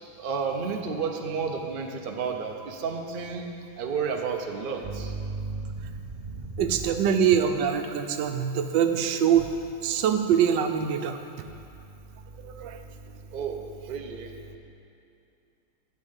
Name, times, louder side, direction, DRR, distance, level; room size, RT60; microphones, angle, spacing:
voice 1, 0.2-3.5 3.8-5.9 6.3-6.6 13.3-13.6 13.9-14.3, right 5 dB, 45° right, 2 dB, 0.7 m, -31 dB
voice 2, 6.6-9.5 9.8-11.5 12.4-12.8, right 8 dB, 85° right, 7 dB, 1.3 m, -24 dB
12.0 x 4.4 x 8.1 m, 2.6 s
omnidirectional pair, 1.9 m